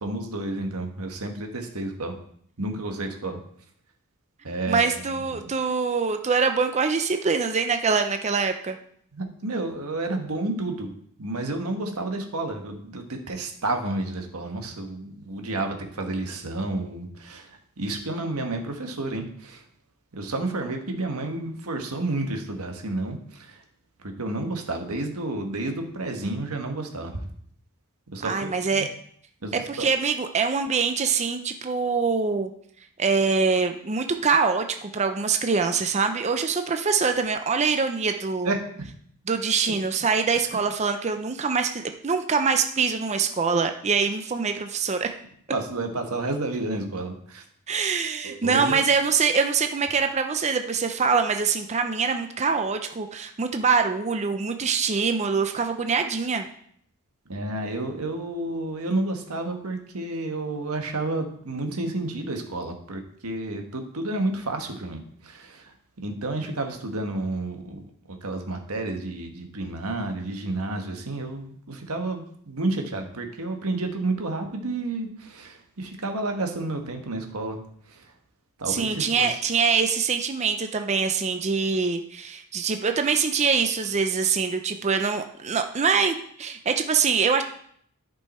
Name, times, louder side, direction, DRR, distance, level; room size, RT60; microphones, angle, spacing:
voice 1, 0.0-2.1 2.6-3.4 4.4-5.4 9.1-10.9 11.2-19.6 20.1-23.6 24.0-27.3 28.1-28.9 29.4-29.9 38.4-38.9 45.5-47.4 48.2-48.8 57.3-77.6 77.9-78.1 78.6-79.4, right 2 dB, 80° right, 4 dB, 1.4 m, -31 dB
voice 2, 4.7-8.8 28.2-28.9 29.5-32.5 33.0-38.5 39.3-45.1 47.7-56.5 78.7-87.4, right 5 dB, 30° right, 7 dB, 0.5 m, -24 dB
10.5 x 5.4 x 4.3 m, 0.65 s
head